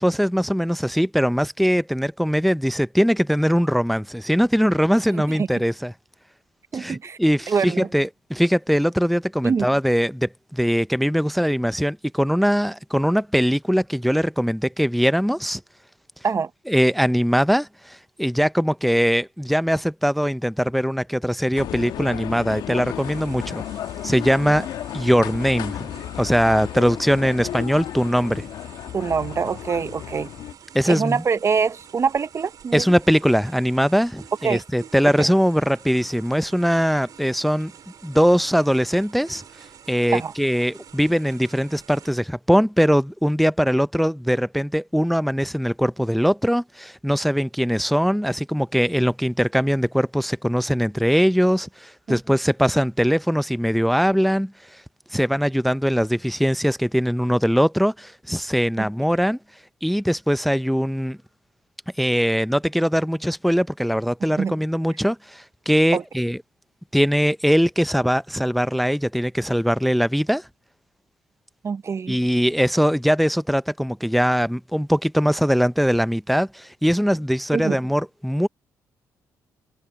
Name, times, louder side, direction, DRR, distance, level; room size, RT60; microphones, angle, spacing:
voice 1, 0.0-5.9 6.7-15.6 16.7-23.6 24.0-24.7 24.9-25.9 26.2-28.5 30.7-31.2 32.7-37.7 38.0-39.4 39.9-54.5 55.1-59.4 59.8-61.2 62.0-66.4 66.9-70.4 72.1-78.5, equal, ahead, 0.6 m, -21 dB
voice 2, 6.7-7.2 7.5-7.9 9.4-9.7 16.2-16.5 28.9-30.3 30.9-32.8 34.4-34.6 35.2-35.3 40.1-40.3 52.1-52.2 58.8-58.9 64.4-64.5 65.9-66.0 71.6-72.2 77.5-77.8, right 5 dB, 40° right, 0.7 m, -24 dB
sound 1, 21.6-30.5, left 12 dB, 75° left, 1.4 m, -33 dB
sound 2, 23.0-42.1, right 8 dB, 60° right, 4.4 m, -47 dB
supercardioid pair, 60°, 7 cm